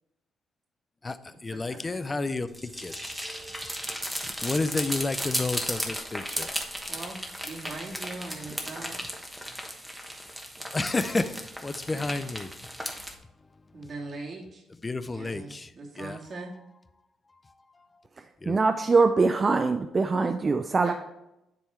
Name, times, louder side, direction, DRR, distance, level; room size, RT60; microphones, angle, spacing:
voice 1, 1.0-3.0 4.2-6.5 6.8-6.9 10.7-11.3 11.6-12.6 14.8-15.7 16.0-16.2 17.8-17.9 18.4-18.6, left 3 dB, 25° left, 0.5 m, -31 dB
sound 1, 2.5-13.1, equal, 5° right, 1.2 m, -35 dB
voice 2, 7.4-9.0 11.9-12.0 13.7-14.6 15.1-16.5 20.8-20.9, right 3 dB, 50° right, 2.0 m, -40 dB
voice 3, 18.5-20.9, right 4 dB, 35° right, 0.4 m, -23 dB
10.0 x 3.6 x 4.5 m
cardioid pair, 90°, 0 cm